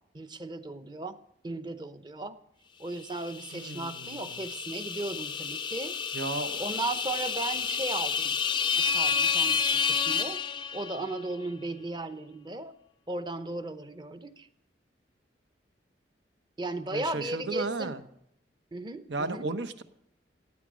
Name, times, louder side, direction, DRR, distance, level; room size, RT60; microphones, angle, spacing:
voice 1, 0.1-1.2 1.4-2.4 2.8-6.0 6.6-8.4 8.8-10.4 10.7-12.7 13.1-14.5 16.6-18.0 18.7-19.5, right 2 dB, 25° right, 11 dB, 0.8 m, -36 dB
sound 1, 3.2-11.2, left 6 dB, 25° left, 0.4 m, -30 dB
voice 2, 3.5-4.4 6.1-6.6 16.9-18.0 19.1-19.8, right 3 dB, 80° right, 9 dB, 1.1 m, -34 dB
15.5 x 9.7 x 6.2 m, 0.75 s
head